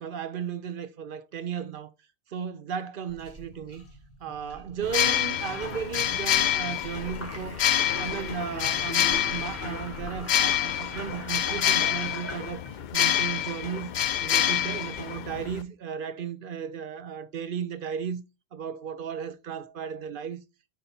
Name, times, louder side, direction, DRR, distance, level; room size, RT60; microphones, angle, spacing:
voice 1, 0.0-1.9 2.3-3.8 4.2-7.6 8.0-13.9 14.2-18.2 18.5-20.4, right 7 dB, 60° right, 0.7 m, -35 dB
sound 1, 3.1-12.8, equal, 15° left, 1.5 m, -42 dB
sound 2, 4.8-15.6, left 11 dB, 55° left, 0.5 m, -27 dB
7.5 x 4.0 x 4.2 m
omnidirectional pair, 1.1 m